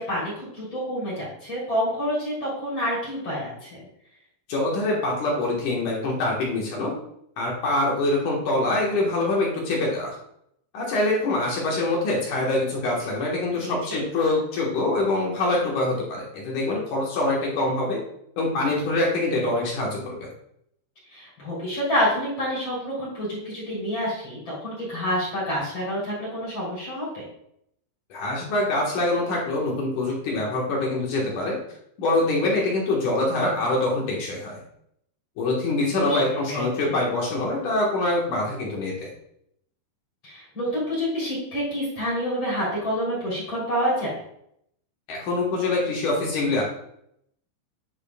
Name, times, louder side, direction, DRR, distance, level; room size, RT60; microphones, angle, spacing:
voice 1, 0.0-3.8 13.6-14.0 21.1-27.2 36.0-36.2 36.5-36.9 40.2-44.2, equal, 30° left, -6 dB, 3.4 m, -28 dB
voice 2, 4.5-6.9 7.4-10.2 10.7-18.0 18.4-20.3 28.1-31.6 32.0-34.6 35.4-39.1 45.1-46.6, left 2 dB, 60° left, -3 dB, 2.3 m, -24 dB
10.5 x 6.1 x 2.3 m, 0.73 s
omnidirectional pair, 5.2 m